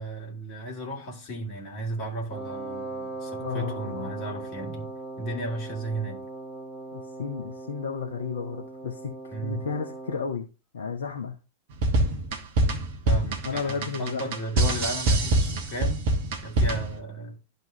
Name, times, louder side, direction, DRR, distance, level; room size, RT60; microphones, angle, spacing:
voice 1, 0.0-4.9 5.2-6.2 9.3-9.7 13.0-16.0 16.4-17.4, right 1 dB, 40° left, 2.3 m, -34 dB
Wind instrument woodwind instrument, 2.3-10.4, right 3 dB, 5° right, 1.4 m, -39 dB
voice 2, 3.4-4.1 6.9-10.5 10.7-11.3 13.4-14.2, left 6 dB, 65° left, 0.8 m, -33 dB
sound 1, 11.7-17.0, right 2 dB, 50° right, 1.2 m, -24 dB
12.0 x 4.1 x 2.7 m
figure-of-eight pair, 90°, 0 cm